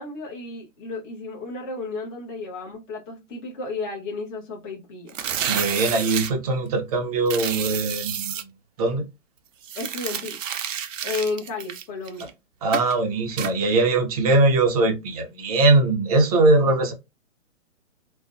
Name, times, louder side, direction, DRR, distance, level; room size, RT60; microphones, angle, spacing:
voice 1, 0.0-5.2 9.8-10.4 11.0-12.3 16.7-16.8, left 3 dB, 15° left, 0.7 m, -33 dB
sound 1, 5.1-6.3 7.3-8.4 9.6-12.3 12.7-12.9 13.4-13.5, right 9 dB, 75° right, 0.6 m, -30 dB
voice 2, 5.5-8.3 8.8-9.0 12.6-16.9, right 2 dB, 30° right, 0.5 m, -21 dB
2.5 x 2.1 x 2.5 m
hypercardioid pair, 145°, 39 cm